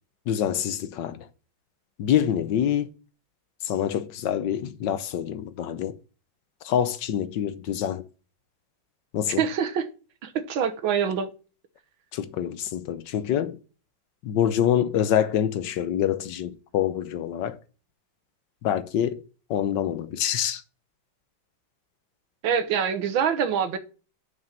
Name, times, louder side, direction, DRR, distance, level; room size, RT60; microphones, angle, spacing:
voice 1, 0.3-1.3 2.0-2.9 3.6-5.9 6.6-8.0 9.1-9.4 12.1-13.6 14.2-17.6 18.6-19.2 19.5-20.6, left 10 dB, 70° left, 1.4 m, -26 dB
voice 2, 9.3-9.9 10.2-11.3 22.4-23.8, right 7 dB, 80° right, 1.8 m, -25 dB
6.4 x 5.5 x 7.2 m
omnidirectional pair, 2.1 m